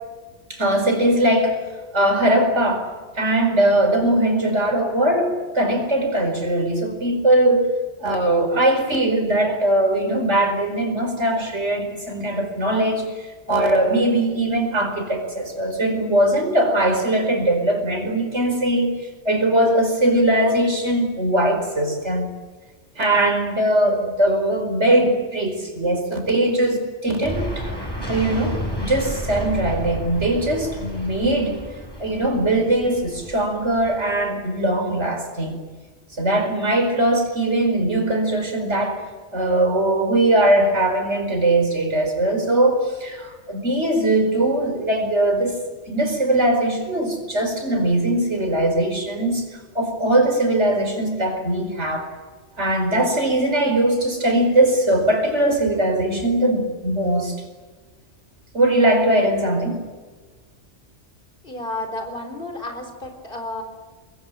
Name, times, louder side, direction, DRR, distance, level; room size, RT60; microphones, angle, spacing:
voice 1, 0.5-1.6 1.9-2.9 3.2-7.7 8.0-22.3 23.0-27.7 28.1-31.6 32.0-35.6 36.2-39.0 39.3-45.6 45.9-49.5 49.8-52.1 52.6-57.4 58.5-59.8, right 1 dB, 80° right, 4 dB, 5.1 m, -20 dB
sound 1, 27.2-34.2, equal, 20° left, 8.1 m, -31 dB
voice 2, 61.4-63.6, left 2 dB, 50° left, 5 dB, 4.4 m, -31 dB
25.0 x 21.0 x 9.1 m, 1.4 s
omnidirectional pair, 1.2 m